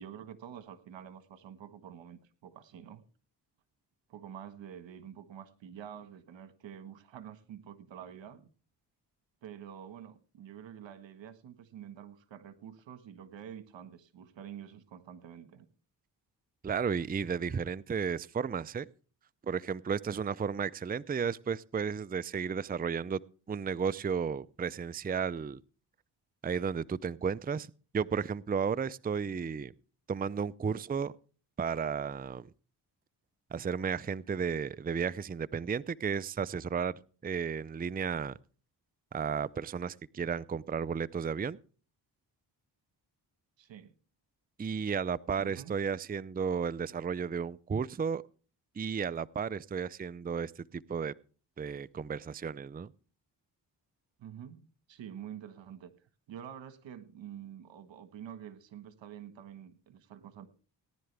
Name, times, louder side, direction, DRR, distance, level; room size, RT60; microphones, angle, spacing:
voice 1, 0.0-3.0 4.1-8.5 9.4-15.7 43.6-43.9 45.4-45.7 54.2-55.9 56.3-60.5, right 9 dB, 80° right, 1.6 m, -48 dB
voice 2, 16.6-18.9 19.4-23.2 23.5-25.6 26.4-27.7 27.9-29.7 30.1-31.1 31.6-32.5 33.5-36.9 37.2-38.4 39.1-41.6 44.6-48.2 48.8-51.1 51.6-52.9, right 6 dB, 20° right, 0.5 m, -33 dB
18.5 x 10.5 x 3.4 m
cardioid pair, 60°, 44 cm